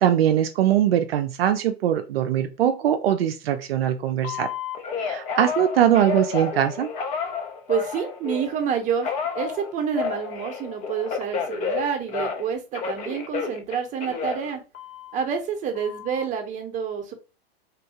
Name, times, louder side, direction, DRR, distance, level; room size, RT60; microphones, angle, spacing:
voice 1, 0.0-4.5 5.0-6.9, right 10 dB, 65° right, 7 dB, 0.5 m, -21 dB
Telephone, 4.2-8.6 9.0-12.5 12.7-15.2 15.7-16.3, left 5 dB, 25° left, 0.5 m, -31 dB
voice 2, 7.7-14.6 15.1-17.1, right 7 dB, 25° right, 5 dB, 0.8 m, -28 dB
3.6 x 2.3 x 2.8 m, 0.31 s
hypercardioid pair, 110°, 31 cm